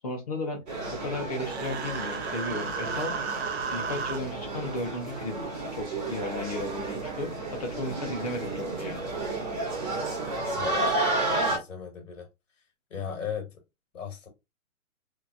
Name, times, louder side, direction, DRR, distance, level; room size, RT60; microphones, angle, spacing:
voice 1, 0.0-0.6 1.0-3.2 3.7-5.4 5.7-7.3 7.6-9.1, left 1 dB, 30° left, 0.6 m, -34 dB
sound 1, 0.7-11.6, right 2 dB, 35° right, 1.2 m, -32 dB
Human voice, 1.4-4.2, right 5 dB, 50° right, 0.5 m, -34 dB
voice 2, 10.6-10.9 11.5-12.3 12.9-13.5 13.9-14.3, left 7 dB, 60° left, 1.3 m, -36 dB
2.8 x 2.5 x 2.4 m
hypercardioid pair, 165°, 42 cm